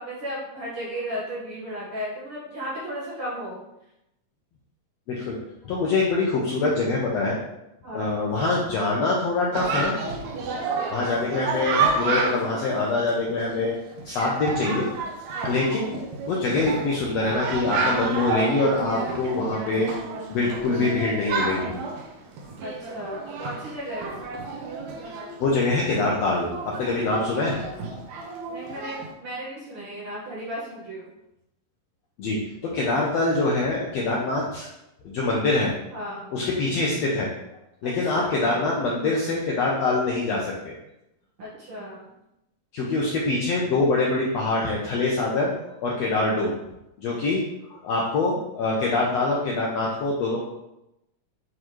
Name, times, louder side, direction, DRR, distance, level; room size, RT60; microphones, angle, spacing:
voice 1, 0.0-3.6 7.8-8.2 10.9-11.4 15.3-15.7 22.6-24.2 28.5-31.1 35.9-36.4 37.8-38.5 41.4-42.1, equal, 50° right, -7 dB, 2.0 m, -35 dB
voice 2, 5.1-5.4 5.6-7.4 7.9-9.9 10.9-13.8 14.0-14.9 15.5-19.9 20.3-21.8 22.4-22.5 25.0-25.1 25.4-27.6 27.9-28.0 32.2-34.7 35.0-35.7 36.3-37.3 37.8-40.7 42.7-45.5 45.8-46.6 47.0-47.4 47.8-50.4, left 3 dB, 75° left, -3 dB, 1.5 m, -24 dB
Chatter, 9.5-29.1, right 4 dB, 70° right, 1.9 m, -30 dB
8.6 x 3.7 x 3.1 m, 0.88 s
omnidirectional pair, 3.9 m